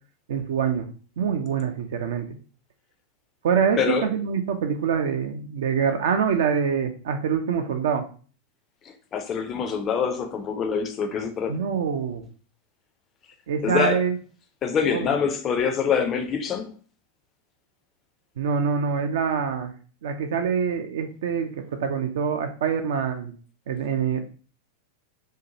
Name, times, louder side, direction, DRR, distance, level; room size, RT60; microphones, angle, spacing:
voice 1, 0.3-0.9 1.2-2.3 3.4-8.0 11.5-12.2 13.5-14.2 14.9-15.1 18.4-19.7 20.0-23.3 23.7-24.2, right 6 dB, 60° right, 6 dB, 0.3 m, -25 dB
voice 2, 3.8-4.1 8.8-11.6 13.6-14.0 14.6-16.8, left 6 dB, 30° left, 6 dB, 0.4 m, -25 dB
2.7 x 2.1 x 2.7 m, 0.40 s
figure-of-eight pair, 90°, 0 cm